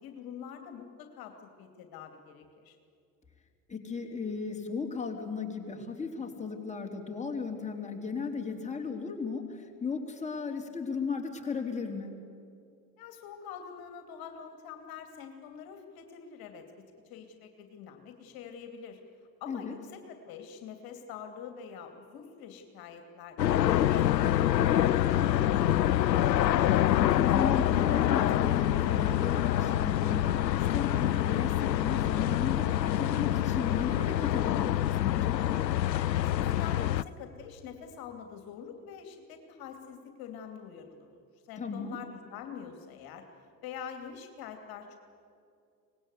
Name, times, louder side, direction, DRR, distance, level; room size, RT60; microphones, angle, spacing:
voice 1, 0.0-2.8 13.0-16.7 17.0-19.0 19.4-26.0 36.2-41.2 41.5-43.2 43.6-45.0, left 7 dB, 45° left, 6 dB, 2.7 m, -45 dB
voice 2, 3.7-12.2 19.5-19.7 27.0-35.4 41.6-42.0, left 5 dB, 15° left, 1 dB, 3.6 m, -35 dB
sound 1, 23.4-37.0, left 12 dB, 85° left, 0.6 m, -26 dB
24.5 x 20.0 x 8.2 m, 2.4 s
figure-of-eight pair, 75°, 50 cm